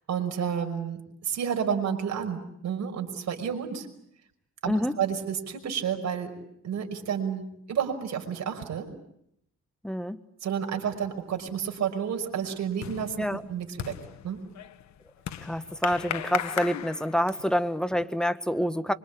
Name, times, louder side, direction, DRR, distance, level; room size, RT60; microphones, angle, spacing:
voice 1, 0.1-3.9 4.6-6.3 6.6-8.9 10.4-14.0 14.2-14.4, right 8 dB, 65° right, 4 dB, 5.7 m, -30 dB
voice 2, 9.8-10.2 13.2-13.4 15.4-18.9, equal, ahead, 10 dB, 1.6 m, -27 dB
sound 1, 11.2-11.6 11.9-17.7, left 10 dB, 65° left, 1.5 m, -37 dB
25.0 x 25.0 x 8.5 m, 0.76 s
cardioid pair, 90°, 30 cm